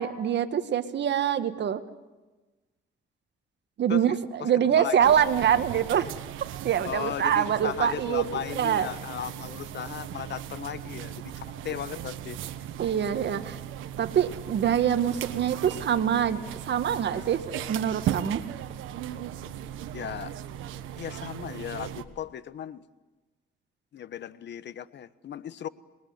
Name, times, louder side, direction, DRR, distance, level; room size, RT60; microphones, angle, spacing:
voice 1, 0.0-1.8 3.8-6.1 6.6-8.2 8.6-8.9 12.8-13.6 14.0-16.4 16.7-18.4, right 9 dB, 60° right, 10 dB, 1.7 m, -25 dB
voice 2, 3.9-5.1 6.8-12.4 19.9-20.3 21.0-22.8 23.9-25.7, left 9 dB, 60° left, 15 dB, 1.2 m, -36 dB
sound 1, 5.0-22.0, right 11 dB, 90° right, 1.4 m, -37 dB
27.0 x 21.5 x 9.6 m, 1.2 s
cardioid pair, 90°, 20 cm